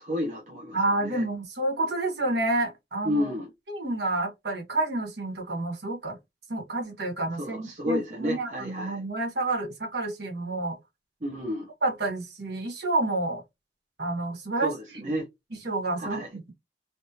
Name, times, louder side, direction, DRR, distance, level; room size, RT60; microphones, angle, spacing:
voice 1, 0.0-1.2 3.0-3.5 7.4-9.0 11.2-11.7 14.6-15.3 16.0-16.3, equal, 45° right, 0.8 m, -31 dB
voice 2, 0.7-3.3 3.7-6.2 6.5-10.8 11.8-13.4 14.0-14.7 15.5-16.5, right 2 dB, 75° right, 1.5 m, -29 dB
3.2 x 2.6 x 2.8 m
head